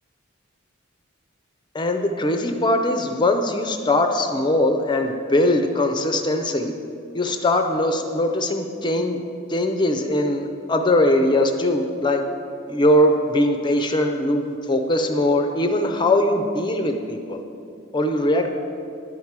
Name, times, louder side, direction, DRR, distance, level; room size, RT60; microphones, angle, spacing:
voice 1, 1.7-6.7 7.1-9.2 9.5-12.2 12.7-17.4 17.9-18.5, left 1 dB, 20° left, 5 dB, 0.4 m, -21 dB
11.0 x 4.6 x 7.3 m, 2.6 s
head